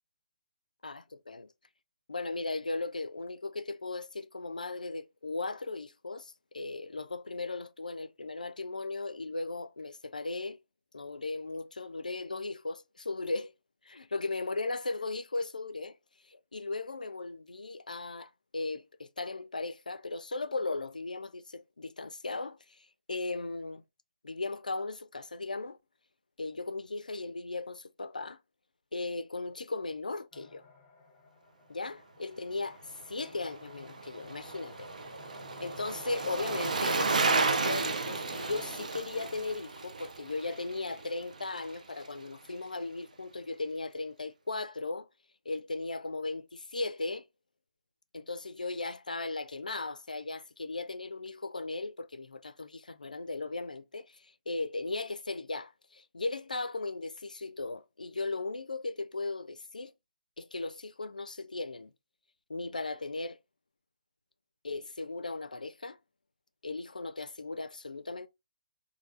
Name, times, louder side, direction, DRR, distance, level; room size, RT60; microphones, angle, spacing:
voice 1, 0.8-1.5 2.1-10.6 10.9-13.5 13.8-16.0 16.2-23.8 24.2-25.8 26.4-28.4 28.9-30.6 31.7-34.9 35.6-45.1 45.5-47.2 48.1-59.9 60.4-61.9 62.5-63.4 64.6-66.0 66.6-68.3, left 3 dB, 80° left, 0.3 m, -37 dB
sound 1, 30.3-38.8, left 4 dB, 25° left, 0.7 m, -52 dB
Bicycle, 33.3-41.7 42.0-42.1, right 4 dB, 70° right, 0.4 m, -33 dB
3.2 x 2.3 x 2.4 m
figure-of-eight pair, 130°, 4 cm